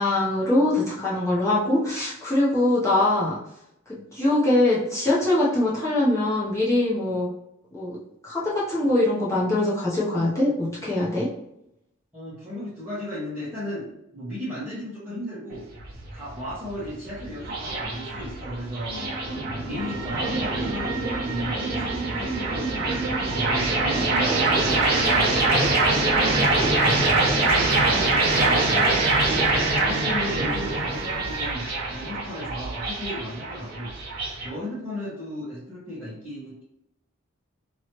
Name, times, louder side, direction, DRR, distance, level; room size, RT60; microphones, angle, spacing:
voice 1, 0.0-3.4 4.1-7.3 7.7-8.0 8.2-11.3, left 1 dB, 15° left, -7 dB, 0.6 m, -22 dB
voice 2, 12.1-15.7 16.1-19.2 19.6-25.6 26.1-29.1 29.8-34.0 34.4-36.6, equal, 10° right, -14 dB, 1.2 m, -35 dB
sound 1, 15.5-34.5, right 2 dB, 45° right, 0.8 m, -24 dB
sound 2, 19.8-31.6, right 4 dB, 85° right, 0.4 m, -38 dB
3.0 x 2.9 x 2.9 m, 0.82 s
head